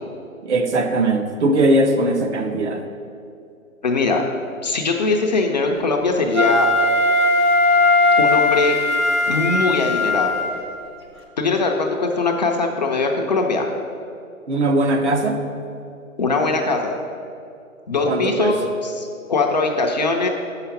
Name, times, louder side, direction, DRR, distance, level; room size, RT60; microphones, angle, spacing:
voice 1, 0.4-2.9 14.5-15.4 18.0-18.6, right 2 dB, 55° right, 5 dB, 0.9 m, -19 dB
voice 2, 3.8-4.2 4.6-6.7 8.2-8.8 9.3-10.3 11.4-13.7 16.2-17.0 17.9-18.5 18.8-20.3, left 3 dB, 30° left, 1 dB, 0.5 m, -21 dB
Wind instrument woodwind instrument, 6.3-10.6, left 2 dB, 20° right, 0.5 m, -18 dB
7.0 x 5.7 x 5.7 m, 2.5 s
hypercardioid pair, 145°, 42 cm